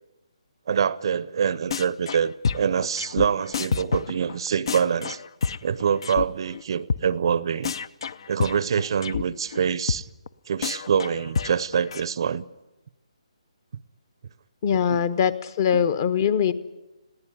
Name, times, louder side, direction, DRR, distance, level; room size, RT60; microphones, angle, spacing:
voice 1, 0.7-5.2 5.6-7.8 8.3-10.1 10.5-12.4 14.9-15.0 15.7-15.8, right 7 dB, 50° right, 0.7 m, -25 dB
sound 1, 1.7-2.2 2.4-6.2 6.5-6.6 6.9-7.0 7.3-7.4 7.6-9.2 9.5-9.6 9.9-10.0 10.3-10.4 10.6-12.0, left 5 dB, 50° left, 0.8 m, -28 dB
voice 2, 14.6-16.5, left 8 dB, 35° left, 1.2 m, -22 dB
21.0 x 16.0 x 9.9 m
hypercardioid pair, 160°, 3 cm